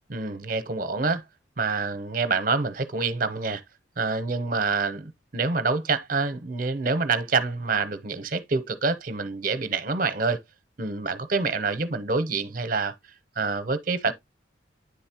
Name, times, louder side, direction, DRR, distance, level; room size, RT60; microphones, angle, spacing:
voice 1, 0.1-1.2 1.6-3.6 4.0-10.4 10.8-12.9 13.4-14.1, right 4 dB, 45° right, 0.7 m, -26 dB
9.5 x 4.0 x 2.8 m
head